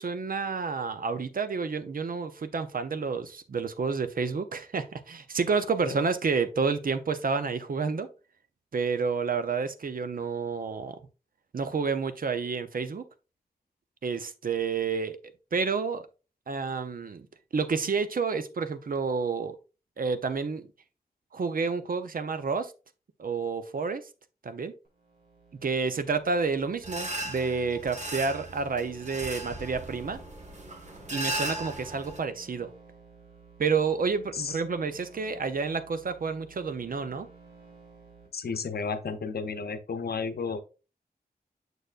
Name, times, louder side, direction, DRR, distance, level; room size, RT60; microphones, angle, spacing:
voice 1, 0.0-8.1 8.7-11.0 11.5-13.0 14.0-15.2 15.5-16.0 16.5-17.3 17.5-19.6 20.0-20.7 21.3-22.7 23.2-24.0 24.4-24.7 25.6-30.2 31.1-32.7 33.6-37.3, right 5 dB, 65° right, 0.6 m, -29 dB
sound 1, 24.8-38.3, right 4 dB, 85° right, 3.2 m, -54 dB
sound 2, 26.8-32.2, right 1 dB, 50° right, 1.5 m, -37 dB
voice 2, 38.3-40.6, left 5 dB, 80° left, 0.7 m, -32 dB
6.6 x 6.5 x 2.4 m
wide cardioid pair, 95°, 16 cm